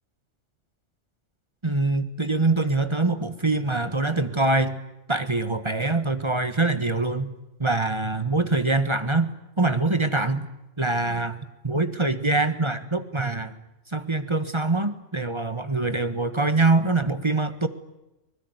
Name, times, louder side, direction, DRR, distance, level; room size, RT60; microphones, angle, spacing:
voice 1, 1.6-4.8 5.1-7.3 7.6-10.5 10.8-11.4 11.6-13.6 13.9-17.7, right 3 dB, 20° right, 11 dB, 1.5 m, -24 dB
23.5 x 21.5 x 9.6 m, 0.95 s
omnidirectional pair, 1.4 m